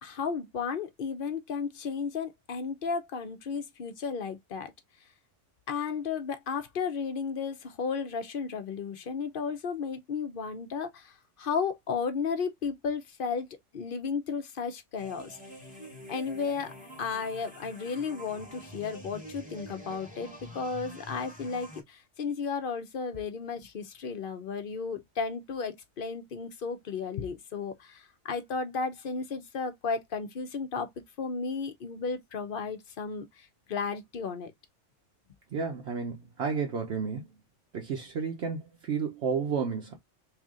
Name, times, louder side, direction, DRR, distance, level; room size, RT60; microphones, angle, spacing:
voice 1, 0.0-4.7 5.7-11.1 11.4-13.5 13.7-15.4 16.1-30.9 31.2-33.2 33.7-34.5, left 5 dB, 50° left, 0.9 m, -34 dB
sound 1, 15.0-21.8, equal, 5° right, 1.1 m, -46 dB
voice 2, 35.5-37.3 37.7-40.0, right 6 dB, 65° right, 1.0 m, -32 dB
3.4 x 2.8 x 3.6 m
omnidirectional pair, 1.2 m